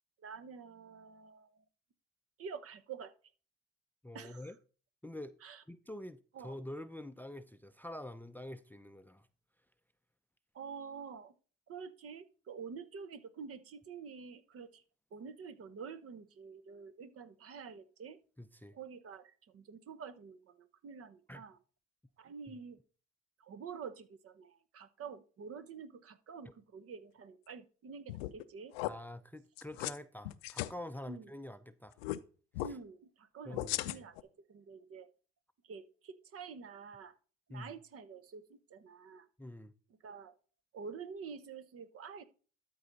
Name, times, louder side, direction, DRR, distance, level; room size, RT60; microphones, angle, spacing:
voice 1, 0.2-1.6 2.4-3.1 4.1-4.5 5.4-5.6 6.3-6.6 10.5-11.3 11.7-14.8 15.1-18.2 18.7-21.6 22.2-22.8 23.4-28.7 31.1-31.3 32.6-35.1 35.6-37.1 37.5-39.3 40.0-40.3 40.7-42.2, right 6 dB, 50° right, 1.0 m, -48 dB
voice 2, 4.0-4.6 5.0-5.4 5.7-9.3 18.4-18.8 21.3-21.4 22.5-22.6 28.9-32.0 32.6-32.8 33.5-34.1 37.5-37.7 39.4-39.7, left 1 dB, 5° left, 0.5 m, -46 dB
sound 1, 28.1-28.4 28.7-28.9 29.6-30.0 30.2-30.7 32.0-32.2 32.5-32.7 33.5-34.2, left 17 dB, 80° left, 0.5 m, -37 dB
12.5 x 4.7 x 4.0 m
hypercardioid pair, 60°, 30 cm